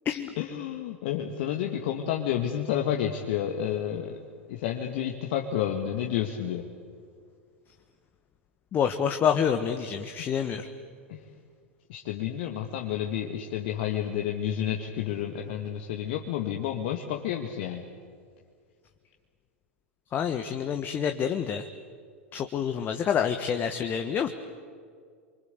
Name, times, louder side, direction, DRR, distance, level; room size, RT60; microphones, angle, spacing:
voice 1, 0.4-4.2 4.5-6.7 11.1-11.2 11.9-17.8, left 10 dB, 50° left, 3 dB, 2.0 m, -30 dB
voice 2, 8.7-10.6 20.1-21.6 22.3-24.3, left 8 dB, 25° left, 7 dB, 1.4 m, -27 dB
27.5 x 25.0 x 8.3 m, 2.1 s
figure-of-eight pair, 90°, 7 cm